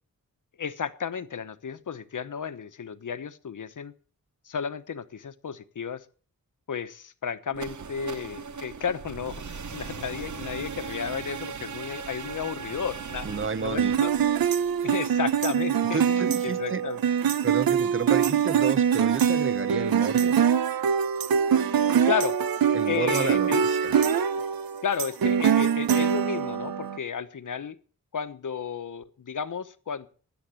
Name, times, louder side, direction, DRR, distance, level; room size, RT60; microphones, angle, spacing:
voice 1, 0.6-3.9 4.5-6.0 6.7-13.3 13.6-14.1 14.8-17.0 22.0-22.4 22.9-23.6 24.8-27.8 28.1-30.1, left 7 dB, 60° left, 1.0 m, -33 dB
sound 1, 7.5-15.4, right 6 dB, 55° right, 1.0 m, -39 dB
voice 2, 13.2-14.0 14.8-14.9 15.9-16.8 17.4-20.4 22.7-23.9, right 5 dB, 35° right, 0.8 m, -31 dB
sound 2, 13.8-27.0, right 8 dB, 80° right, 0.8 m, -24 dB
13.5 x 9.7 x 7.5 m
wide cardioid pair, 105°, 35 cm